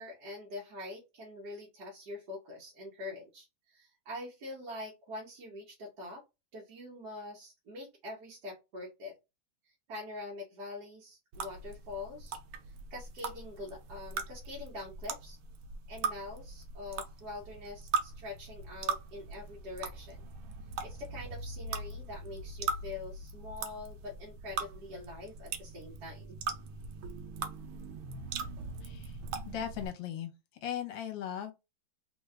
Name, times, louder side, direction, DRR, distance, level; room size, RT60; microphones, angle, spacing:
voice 1, 0.0-6.2 6.5-9.2 9.7-12.4 12.7-15.4 15.9-20.2 20.8-26.4, left 2 dB, 60° right, 1.4 m, -44 dB
sound 1, 11.3-29.9, right 4 dB, 85° right, 1.4 m, -40 dB
voice 2, 28.8-29.2 29.4-30.3 30.6-31.5, left 9 dB, 75° left, 1.5 m, -38 dB
3.6 x 2.3 x 3.2 m
omnidirectional pair, 2.1 m